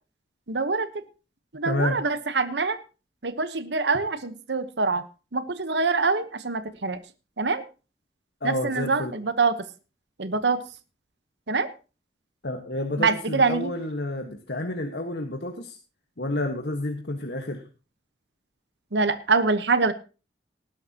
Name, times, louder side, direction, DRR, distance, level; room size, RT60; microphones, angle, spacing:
voice 1, 0.5-0.9 1.5-2.8 3.2-5.0 5.3-7.0 7.4-7.6 8.4-9.6 10.2-10.6 11.5-11.7 13.0-13.7 18.9-19.9, right 4 dB, 80° right, 11 dB, 1.1 m, -24 dB
voice 2, 1.6-2.0 8.4-9.1 12.4-15.8 16.2-17.6, left 1 dB, 70° left, 4 dB, 1.5 m, -29 dB
19.0 x 11.5 x 2.9 m, 0.33 s
head